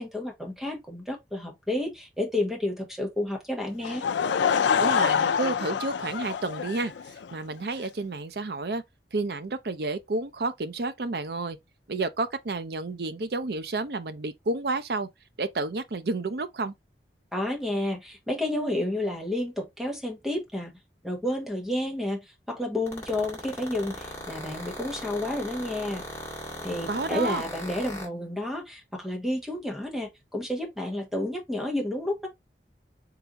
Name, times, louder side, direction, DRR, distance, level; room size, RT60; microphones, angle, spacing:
voice 1, 0.0-4.0 17.3-20.7 21.0-26.0 26.6-32.3, left 1 dB, ahead, 1.0 m, -30 dB
Laughter / Crowd, 3.8-7.3, left 7 dB, 90° left, 0.4 m, -26 dB
voice 2, 4.8-8.8 9.1-11.6 11.9-15.1 15.4-16.7 26.9-27.4, right 3 dB, 65° right, 0.6 m, -30 dB
sound 1, 22.9-28.1, left 1 dB, 15° left, 1.7 m, -37 dB
3.9 x 3.3 x 2.9 m
head